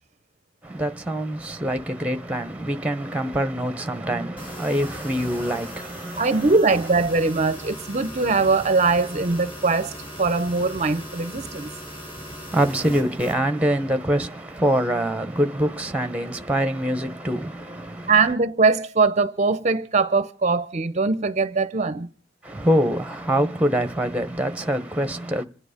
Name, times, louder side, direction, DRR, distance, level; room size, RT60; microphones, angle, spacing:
voice 1, 0.6-6.5 12.5-18.2 22.4-25.4, equal, 5° right, 1.0 m, -25 dB
sound 1, 4.4-13.4, equal, 30° left, 4.4 m, -38 dB
voice 2, 6.2-11.7 18.1-22.1, right 4 dB, 35° right, 0.7 m, -21 dB
27.0 x 9.4 x 5.2 m
head